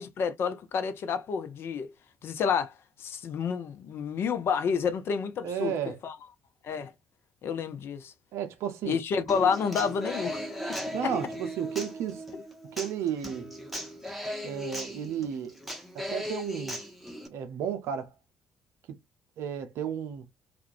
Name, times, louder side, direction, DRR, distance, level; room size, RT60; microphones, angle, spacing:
voice 1, 0.0-1.9 2.2-2.7 3.0-5.7 6.0-6.2 6.6-6.9 7.4-8.1 8.8-10.8 11.0-11.1 12.3-12.4, left 6 dB, 55° left, 0.5 m, -29 dB
voice 2, 5.4-6.0 8.3-9.0 10.9-12.3 12.7-13.5 14.4-15.6 15.9-16.8 17.3-18.1 19.4-20.3, right 8 dB, 65° right, 0.6 m, -33 dB
Human voice / Acoustic guitar, 9.3-17.3, equal, ahead, 0.8 m, -37 dB
2.4 x 2.1 x 2.5 m
hypercardioid pair, 45°, 5 cm